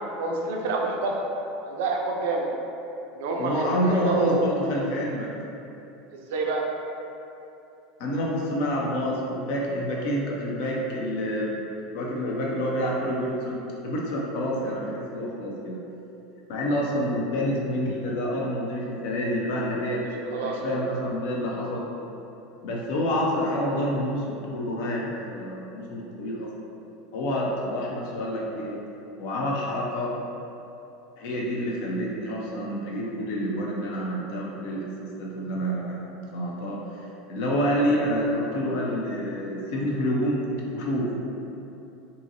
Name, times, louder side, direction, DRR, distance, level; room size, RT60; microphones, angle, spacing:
voice 1, 0.1-1.2 1.6-2.5 3.1-4.4 6.1-6.6 20.3-20.8, right 3 dB, 65° right, 0 dB, 0.4 m, -28 dB
voice 2, 3.4-5.3 8.0-11.6 11.9-13.6 13.8-15.8 16.5-20.0 20.4-21.8 22.6-26.5 27.1-28.7 29.2-30.1 31.2-36.8 37.3-40.4 40.7-41.1, equal, 60° left, -3 dB, 0.5 m, -28 dB
2.7 x 2.7 x 2.6 m, 2.9 s
figure-of-eight pair, 80°, 0 cm